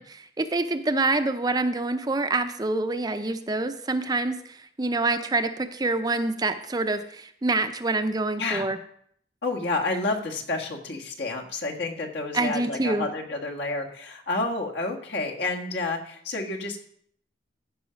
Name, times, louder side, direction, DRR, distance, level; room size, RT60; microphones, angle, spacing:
voice 1, 0.0-8.8 12.3-13.1, right 2 dB, 20° right, 9 dB, 0.5 m, -26 dB
voice 2, 9.4-16.9, left 3 dB, 70° left, 1 dB, 1.7 m, -30 dB
14.5 x 5.7 x 5.1 m, 0.66 s
head